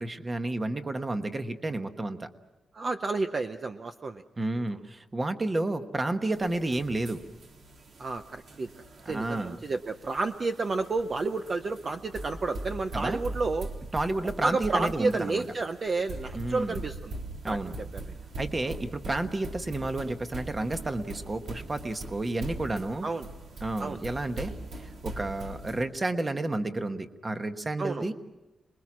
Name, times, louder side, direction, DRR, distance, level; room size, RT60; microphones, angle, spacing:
voice 1, 0.0-2.3 4.4-7.2 9.0-9.6 12.9-13.2 13.9-15.4 16.3-16.8 17.4-17.8 18.4-23.1 23.6-28.1, right 2 dB, 20° right, 7 dB, 1.2 m, -31 dB
voice 2, 2.7-4.2 8.0-8.7 9.1-13.7 14.4-17.1 17.5-17.6 18.1-18.2 18.7-18.8 23.0-23.3 23.8-24.0 27.8-28.1, right 3 dB, 35° right, 7 dB, 0.7 m, -30 dB
sound 1, 6.3-25.8, right 2 dB, 65° right, 3.6 m, -42 dB
27.5 x 21.5 x 6.2 m, 1.0 s
wide cardioid pair, 175°, 0 cm